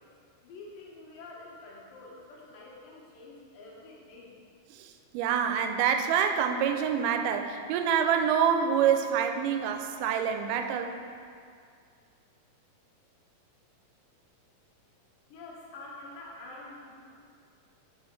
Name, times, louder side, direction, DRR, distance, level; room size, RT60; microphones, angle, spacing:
voice 1, 0.4-4.3 15.3-17.0, left 2 dB, 90° left, -4 dB, 2.8 m, -47 dB
voice 2, 4.7-11.0, right 8 dB, 80° right, 6 dB, 2.0 m, -26 dB
10.0 x 4.6 x 3.2 m, 2.2 s
omnidirectional pair, 3.9 m